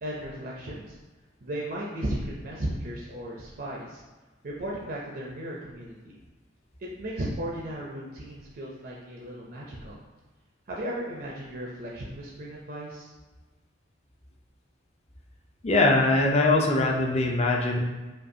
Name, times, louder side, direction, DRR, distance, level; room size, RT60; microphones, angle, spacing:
voice 1, 0.0-1.0 1.4-4.0 4.4-6.2 6.8-10.0 10.7-13.1, right 1 dB, 50° right, -3 dB, 0.6 m, -35 dB
voice 2, 15.6-17.8, left 2 dB, 35° left, 0 dB, 0.5 m, -22 dB
5.1 x 2.4 x 2.7 m, 1.2 s
head